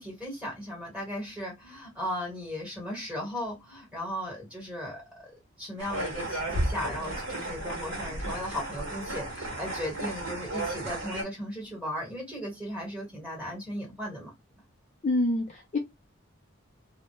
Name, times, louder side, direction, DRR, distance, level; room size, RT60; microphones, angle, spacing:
voice 1, 0.0-5.3 5.6-14.3, left 1 dB, 5° right, 1.2 m, -36 dB
sound 1, 5.8-11.2, right 1 dB, 60° right, 1.0 m, -33 dB
voice 2, 15.0-15.8, left 2 dB, 35° left, 0.4 m, -26 dB
2.2 x 2.1 x 2.9 m
head